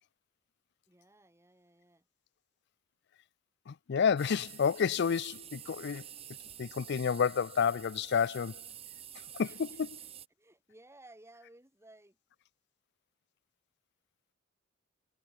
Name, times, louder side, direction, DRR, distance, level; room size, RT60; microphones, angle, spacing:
voice 1, 0.9-2.0 9.4-10.1 10.4-12.2, right 1 dB, 15° right, 2.9 m, -58 dB
voice 2, 3.7-6.1 6.6-8.5 9.4-9.9, left 6 dB, 55° left, 0.4 m, -30 dB
sound 1, 4.2-10.3, right 10 dB, 30° right, 0.9 m, -49 dB
head